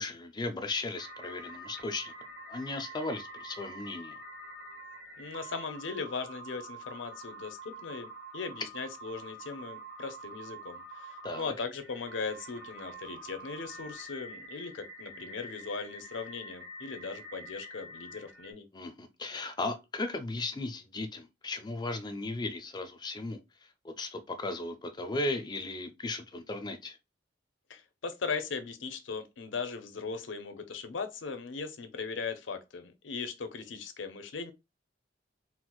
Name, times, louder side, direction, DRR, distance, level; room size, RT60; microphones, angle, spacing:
voice 1, 0.0-2.1 2.5-4.2 11.2-11.5 18.7-23.4 23.8-27.0, left 2 dB, 25° left, 0.4 m, -36 dB
sound 1, 1.0-18.5, right 1 dB, 70° right, 1.2 m, -46 dB
voice 2, 5.2-8.1 8.3-18.7 27.7-34.5, left 4 dB, 90° left, 0.6 m, -38 dB
4.3 x 2.0 x 2.3 m
head